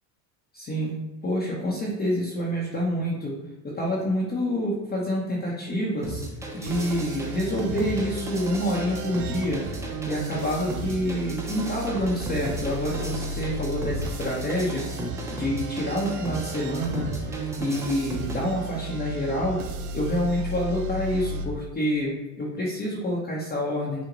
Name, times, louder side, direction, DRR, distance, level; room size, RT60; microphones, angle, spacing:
voice 1, 0.5-3.3 3.6-6.2 6.5-9.6 10.0-14.9 15.3-19.6 19.9-24.0, equal, 20° left, -5 dB, 0.8 m, -27 dB
sound 1, 6.0-18.4, right 1 dB, 5° right, 0.5 m, -36 dB
sound 2, 6.7-21.5, right 3 dB, 70° right, 0.7 m, -35 dB
6.0 x 2.2 x 3.9 m, 1.0 s
supercardioid pair, 120°, 46 cm